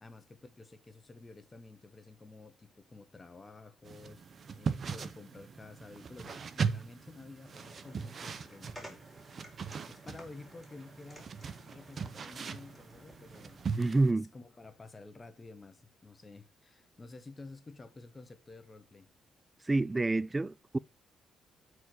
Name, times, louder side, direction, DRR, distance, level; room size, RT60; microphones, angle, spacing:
voice 1, 0.0-4.2 4.6-9.4 9.8-13.6 14.1-19.1, left 3 dB, 25° left, 1.1 m, -51 dB
sound 1, 3.8-14.1, right 5 dB, 50° right, 0.8 m, -39 dB
sound 2, 7.4-13.7, equal, ahead, 4.0 m, -55 dB
voice 2, 13.8-14.3 19.6-20.8, right 2 dB, 20° right, 0.3 m, -28 dB
8.3 x 4.8 x 6.1 m
cardioid pair, 90°, 0 cm